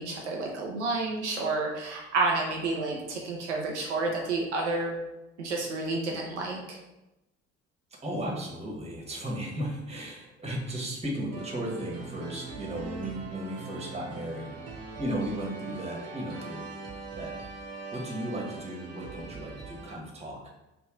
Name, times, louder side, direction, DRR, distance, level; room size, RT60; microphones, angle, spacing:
voice 1, 0.0-5.0 5.4-6.8, right 3 dB, 85° right, 0 dB, 0.6 m, -30 dB
voice 2, 8.0-14.7 15.0-16.6 17.2-17.3 17.9-20.6, right 1 dB, 20° right, -1 dB, 1.2 m, -35 dB
sound 1, 11.3-20.0, right 3 dB, 45° right, 1.0 m, -41 dB
3.3 x 2.5 x 3.7 m, 0.95 s
figure-of-eight pair, 55°, 34 cm